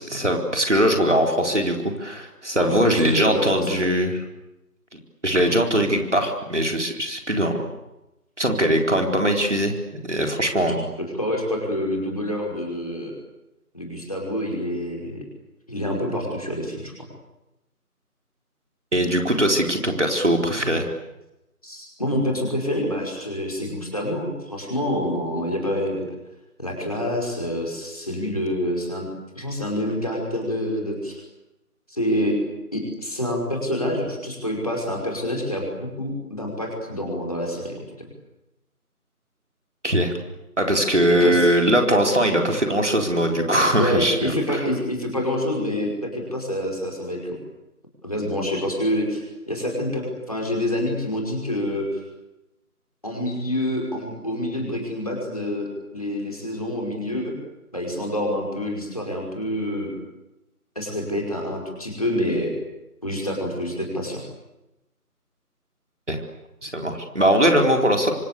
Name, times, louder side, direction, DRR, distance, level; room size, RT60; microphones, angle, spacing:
voice 1, 0.0-4.2 4.9-7.6 8.4-9.8 10.0-10.9 18.9-20.9 39.8-40.1 40.6-44.6 66.1-66.2 66.6-68.1, equal, 50° right, 3 dB, 4.2 m, -21 dB
voice 2, 2.6-3.8 10.7-10.8 11.1-13.1 13.7-15.2 15.7-17.1 21.6-26.1 26.6-29.1 29.4-31.2 31.9-32.4 32.7-38.1 41.2-41.5 43.8-47.4 48.0-52.0 53.0-57.4 57.7-59.9 60.8-62.5 63.0-64.2, left 1 dB, 25° left, 0 dB, 5.3 m, -27 dB
27.0 x 26.0 x 8.3 m, 0.94 s
figure-of-eight pair, 180°, 46 cm